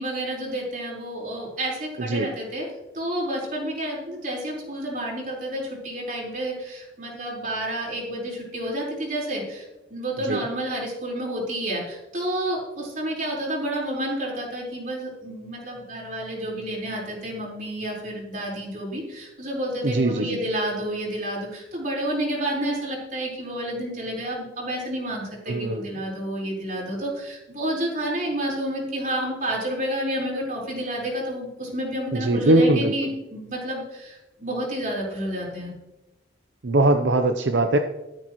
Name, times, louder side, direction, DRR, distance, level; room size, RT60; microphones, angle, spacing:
voice 1, 0.0-2.7 2.9-35.7, right 1 dB, 45° right, -3 dB, 4.6 m, -30 dB
voice 2, 2.0-2.3 10.3-10.4 19.8-20.4 25.5-25.8 32.1-32.9 36.6-37.8, right 2 dB, 80° right, 6 dB, 0.8 m, -21 dB
13.5 x 13.5 x 3.1 m, 0.99 s
head